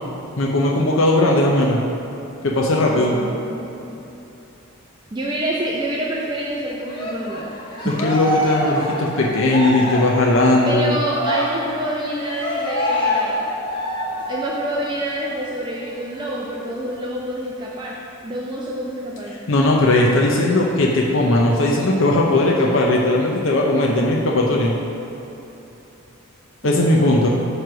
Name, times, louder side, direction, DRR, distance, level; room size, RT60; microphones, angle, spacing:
voice 1, 0.4-1.8 2.4-3.2 7.8-11.0 19.5-24.7 26.6-27.3, left 2 dB, 65° left, -2 dB, 0.7 m, -18 dB
voice 2, 2.8-4.0 5.1-7.6 7.8-7.9 10.7-13.5 14.3-17.9 18.2-19.3 23.9-24.9 26.6-27.3, right 1 dB, 20° right, -4 dB, 0.5 m, -27 dB
Cheering, 6.9-14.8 15.2-15.4 15.8-16.8, equal, 25° left, 1.0 m, -26 dB
9.0 x 3.3 x 6.1 m, 3.0 s
head